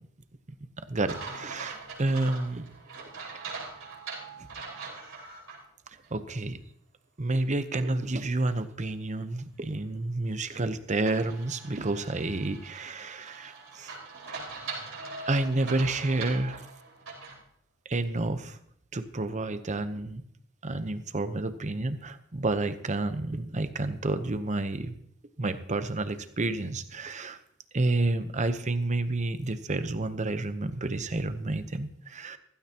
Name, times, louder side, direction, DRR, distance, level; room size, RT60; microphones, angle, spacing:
voice 1, 0.9-2.7 4.4-4.5 6.1-6.6 7.2-13.9 15.3-16.6 17.8-18.6 18.9-20.2 20.6-25.0 25.4-27.4 27.7-32.4, right 2 dB, 35° right, 10 dB, 0.9 m, -30 dB
sound 1, 1.1-5.6 6.0-6.1 11.1-17.4, right 4 dB, 70° right, 5.2 m, -41 dB
15.5 x 15.5 x 2.9 m, 0.68 s
head